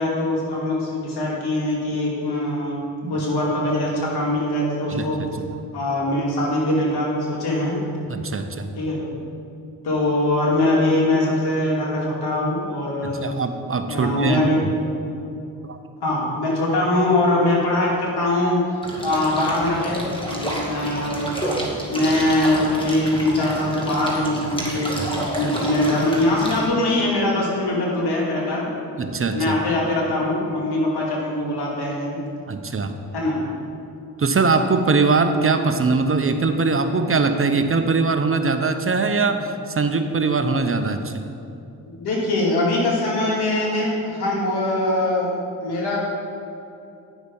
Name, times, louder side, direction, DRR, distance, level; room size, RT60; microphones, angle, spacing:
voice 1, 0.0-2.8 3.1-5.2 5.7-7.8 8.8-9.1 9.8-13.3 13.9-14.6 16.0-18.7 19.0-21.4 21.9-28.7 29.3-32.2 33.1-33.4 41.9-45.4 45.6-46.0, left 1 dB, 75° left, -3 dB, 2.5 m, -22 dB
voice 2, 8.0-8.7 13.0-14.4 15.7-15.8 25.0-25.1 25.4-25.5 29.0-29.5 32.5-32.9 34.2-41.1, right 4 dB, 35° right, 7 dB, 0.8 m, -21 dB
sound 1, 18.8-26.6, equal, 15° left, 2.2 m, -30 dB
10.0 x 6.1 x 5.4 m, 2.7 s
cardioid pair, 60°, 39 cm